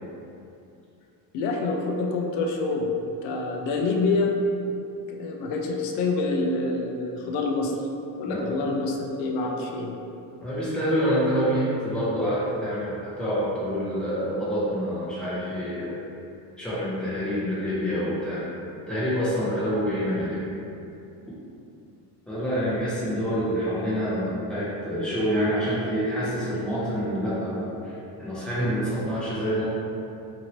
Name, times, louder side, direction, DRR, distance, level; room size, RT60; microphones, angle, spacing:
voice 1, 1.3-2.9 3.2-4.4 5.1-7.7 8.2-9.9, left 3 dB, 80° left, 1 dB, 0.5 m, -26 dB
voice 2, 8.2-8.7 10.4-15.9 16.6-20.5 22.3-29.7, equal, ahead, -10 dB, 0.7 m, -27 dB
2.8 x 2.7 x 2.9 m, 2.7 s
cardioid pair, 145°, 42 cm